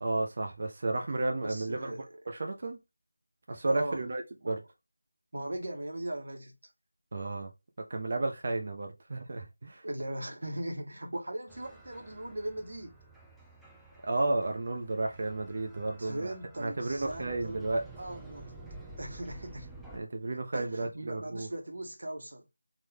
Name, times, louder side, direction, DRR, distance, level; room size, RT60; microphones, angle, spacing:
voice 1, 0.0-2.8 3.5-4.6 7.1-7.5 7.9-9.8 14.0-17.8 19.9-21.5, right 2 dB, 40° right, 1.0 m, -33 dB
voice 2, 1.3-2.0 3.7-4.0 4.4-4.6 5.3-6.5 9.8-12.9 16.0-17.6 18.0-18.5 19.0-19.7 20.5-22.4, right 1 dB, 60° right, 1.3 m, -39 dB
sound 1, 11.5-20.0, right 2 dB, ahead, 0.4 m, -51 dB
3.8 x 2.6 x 3.5 m
figure-of-eight pair, 170°, 0 cm